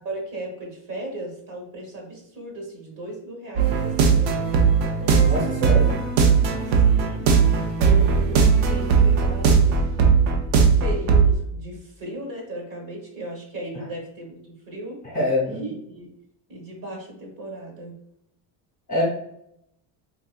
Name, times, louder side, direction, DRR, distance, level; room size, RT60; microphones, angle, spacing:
voice 1, 0.0-4.4 5.0-5.7 6.5-7.2 7.8-9.9 10.8-15.0 15.5-16.1 16.5-18.0, right 2 dB, 45° right, 0 dB, 1.3 m, -36 dB
sound 1, 3.6-11.3, right 6 dB, 60° right, 0.7 m, -18 dB
voice 2, 5.2-5.9 15.0-15.7 18.9-19.0, left 1 dB, 20° left, -4 dB, 1.1 m, -25 dB
3.8 x 2.6 x 2.3 m, 0.76 s
cardioid pair, 160°, 45 cm